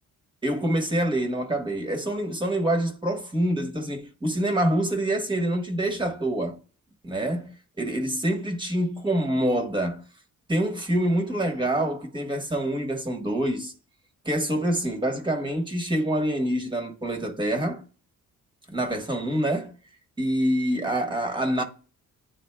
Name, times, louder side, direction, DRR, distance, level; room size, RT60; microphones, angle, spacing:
voice 1, 0.4-6.6 7.0-10.0 10.5-13.7 14.2-17.8 18.7-19.7 20.2-21.6, right 1 dB, 15° right, 1.1 m, -26 dB
11.0 x 3.9 x 2.2 m
cardioid pair, 145°, 33 cm